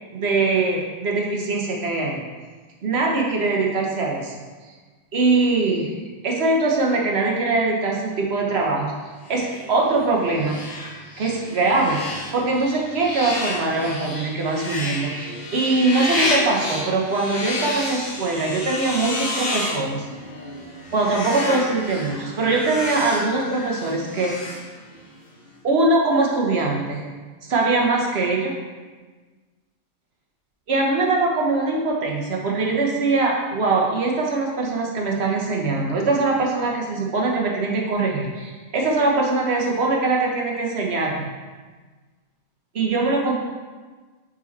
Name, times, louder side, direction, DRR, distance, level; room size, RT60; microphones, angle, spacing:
voice 1, 0.1-2.2 2.8-4.3 5.1-5.9 6.2-8.9 9.3-10.6 11.2-12.0 12.3-20.1 20.9-24.4 25.6-27.0 27.5-28.5 30.7-41.3 42.7-43.4, right 3 dB, 60° right, -1 dB, 1.3 m, -22 dB
sound 1, 9.2-25.2, left 2 dB, 40° left, 1.2 m, -31 dB
5.6 x 5.1 x 4.1 m, 1.4 s
omnidirectional pair, 1.3 m